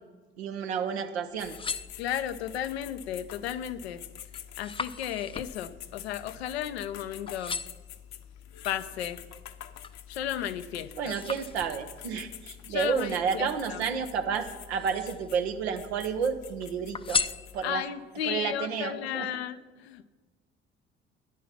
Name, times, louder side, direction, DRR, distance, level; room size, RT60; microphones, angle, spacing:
voice 1, 0.4-1.6 11.0-17.2 17.5-17.8 18.2-19.3, right 6 dB, 85° right, 7 dB, 1.0 m, -31 dB
sound 1, 1.2-2.5 3.1-3.5 3.9-7.0 7.3-8.0 8.6-10.1 10.5-12.0 12.9-14.1 14.6-15.4 15.7-16.5 16.9-18.0 18.5-18.6, left 5 dB, 15° left, 0.5 m, -37 dB
sound 2, 1.4-17.6, left 10 dB, 55° left, 0.9 m, -47 dB
voice 2, 2.0-4.0 4.6-7.6 8.6-9.3 10.1-11.1 12.7-13.8 17.6-20.0, left 10 dB, 80° left, 11 dB, 0.6 m, -34 dB
13.5 x 10.0 x 5.9 m, 1.3 s
hypercardioid pair, 50°, 31 cm